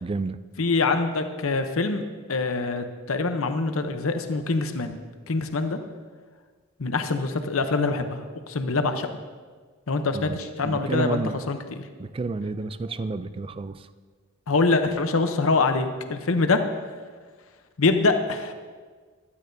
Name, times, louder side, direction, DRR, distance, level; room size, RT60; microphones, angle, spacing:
voice 1, 0.0-0.4 10.1-10.4 10.6-11.4 12.0-13.9, right 3 dB, 25° right, 13 dB, 0.3 m, -30 dB
voice 2, 0.6-5.0 5.3-5.8 6.8-9.1 9.9-11.2 11.5-11.8 14.5-16.6 17.8-18.5, left 3 dB, 65° left, 7 dB, 0.8 m, -24 dB
15.5 x 12.5 x 2.7 m, 1.5 s
head